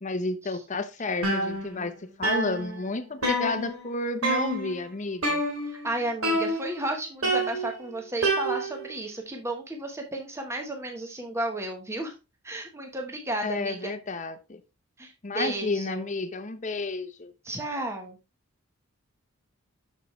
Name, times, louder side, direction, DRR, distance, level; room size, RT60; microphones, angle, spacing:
voice 1, 0.0-5.4 13.4-14.6 15.2-17.3, left 3 dB, 35° left, 10 dB, 0.8 m, -31 dB
sound 1, 1.2-1.9 2.2-3.9 4.2-4.8 5.2-5.9 6.2-6.9 7.2-8.9, right 1 dB, 85° right, 2.9 m, -28 dB
voice 2, 5.8-12.1 12.4-13.9 15.0-16.0 17.4-18.2, right 2 dB, 15° right, 3 dB, 1.1 m, -33 dB
7.9 x 6.5 x 3.1 m, 0.27 s
head